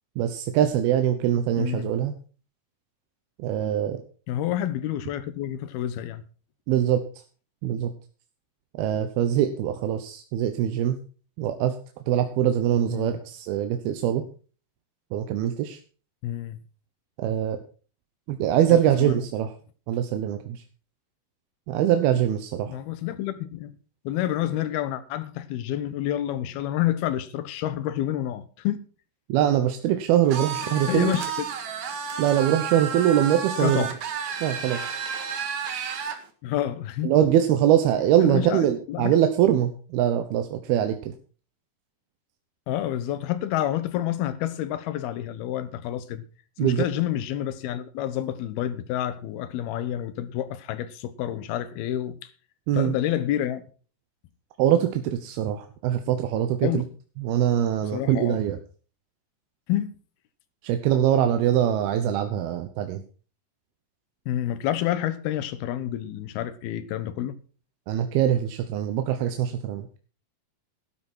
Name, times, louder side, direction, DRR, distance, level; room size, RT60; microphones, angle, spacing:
voice 1, 0.2-2.1 3.4-4.0 6.7-7.0 7.6-7.9 8.7-11.0 11.4-11.8 12.1-14.3 15.1-15.8 17.2-17.6 18.3-19.5 19.9-20.6 21.7-22.8 29.3-31.1 32.2-33.9 34.4-35.0 37.0-41.1 46.6-46.8 52.7-53.0 54.6-56.8 57.2-58.6 60.6-63.0 67.9-69.9, right 10 dB, 90° right, 3.0 m, -23 dB
voice 2, 1.6-1.9 4.3-6.2 12.9-13.2 16.2-16.6 18.7-19.2 22.7-23.7 24.0-28.8 30.9-31.2 33.6-34.0 36.4-37.1 38.2-38.6 38.9-39.2 42.7-46.2 46.6-52.3 52.7-53.6 56.6-56.9 57.9-58.4 59.7-59.9 64.3-67.4, left 12 dB, 85° left, 3.0 m, -28 dB
sound 1, 30.3-36.2, right 6 dB, 60° right, 2.9 m, -31 dB
12.5 x 12.5 x 4.4 m
omnidirectional pair, 4.3 m